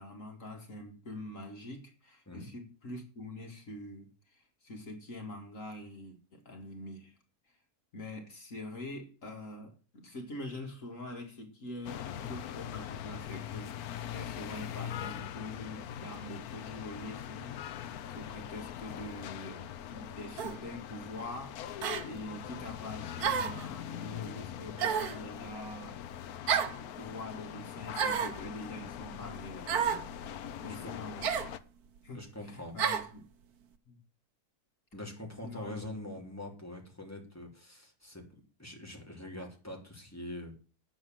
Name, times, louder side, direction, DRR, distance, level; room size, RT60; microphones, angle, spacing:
voice 1, 0.0-7.2 7.9-17.6 18.0-26.0 26.8-30.1 30.6-31.5 32.0-33.3 33.9-34.0 35.4-36.2, left 1 dB, 60° left, 2.3 m, -44 dB
sound 1, 11.9-31.6, left 10 dB, 75° left, 1.2 m, -42 dB
sound 2, 20.4-20.6 21.8-22.1 23.2-23.6 24.8-25.2 26.5-26.8 27.9-28.4 29.7-30.0 31.2-31.5 32.8-33.1, right 7 dB, 75° right, 1.5 m, -30 dB
voice 2, 32.1-32.8 34.9-40.5, left 1 dB, 10° left, 3.2 m, -44 dB
9.3 x 7.3 x 7.4 m
omnidirectional pair, 1.6 m